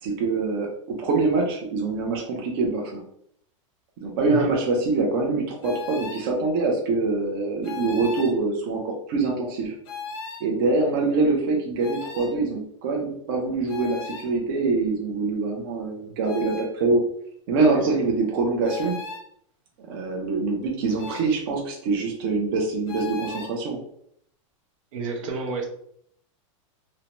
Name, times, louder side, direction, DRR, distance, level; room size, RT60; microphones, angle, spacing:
voice 1, 0.0-3.0 4.0-9.7 10.4-17.0 17.5-19.0 19.9-23.8, right 3 dB, 45° right, 0 dB, 0.5 m, -24 dB
sound 1, 5.6-6.3 7.6-8.4 9.9-10.5 11.8-12.4 13.7-14.3 16.3-16.7 18.6-19.3 21.0-21.3 22.9-23.6, left 5 dB, 50° left, 0.6 m, -36 dB
voice 2, 24.9-25.7, right 3 dB, 80° right, 1 dB, 0.8 m, -29 dB
2.6 x 2.1 x 2.9 m, 0.68 s
supercardioid pair, 170°, 17 cm